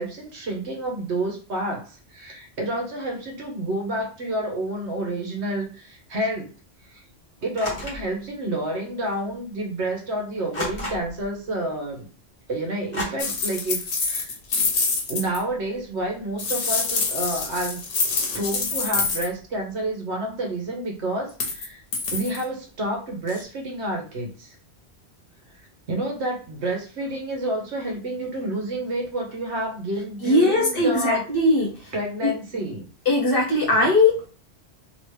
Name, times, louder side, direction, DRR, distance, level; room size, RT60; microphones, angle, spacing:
voice 1, 0.0-6.5 6.9-7.0 7.4-12.1 12.5-14.4 15.1-17.9 18.3-21.8 22.1-24.6 25.9-31.2 31.9-32.8, right 1 dB, 70° right, 0 dB, 1.3 m, -29 dB
sound 1, 7.6-8.1 9.1-9.2 10.5-11.3 12.9-13.0, left 1 dB, 25° left, 1.2 m, -31 dB
sound 2, 13.2-15.4 16.4-19.3 21.3-21.7 21.9-22.4 23.3-23.4, left 4 dB, 80° left, 1.1 m, -26 dB
voice 2, 30.2-31.7 32.2-32.3 33.1-34.3, left 2 dB, 55° left, -1 dB, 1.2 m, -19 dB
3.0 x 2.9 x 3.1 m, 0.37 s
omnidirectional pair, 1.2 m